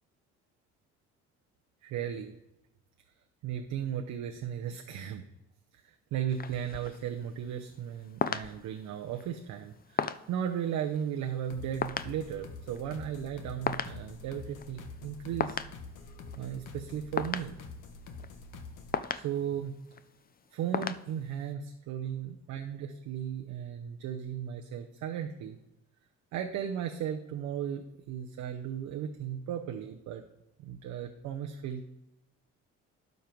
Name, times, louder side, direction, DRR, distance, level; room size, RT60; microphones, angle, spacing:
voice 1, 1.8-2.3 3.4-5.2 5.7-15.7 16.4-17.5 19.1-19.8 20.5-25.6 26.3-30.2 30.6-31.8, right 9 dB, 90° right, 3 dB, 0.8 m, -36 dB
sound 1, 6.3-21.5, left 7 dB, 30° left, 0.5 m, -38 dB
sound 2, 11.5-19.0, left 3 dB, 85° left, 1.2 m, -46 dB
12.0 x 5.3 x 4.6 m, 0.93 s
cardioid pair, 90°, 30 cm